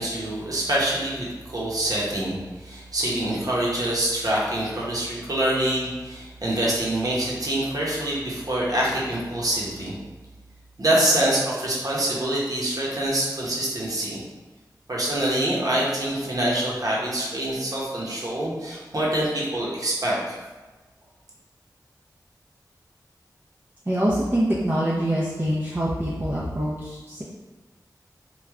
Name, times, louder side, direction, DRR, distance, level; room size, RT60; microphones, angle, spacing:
voice 1, 0.0-9.9 10.8-14.2 14.9-20.4, right 1 dB, 55° right, -5 dB, 1.0 m, -25 dB
voice 2, 23.9-27.2, equal, 25° right, -6 dB, 0.6 m, -25 dB
3.3 x 2.4 x 3.6 m, 1.2 s
wide cardioid pair, 60°, 7 cm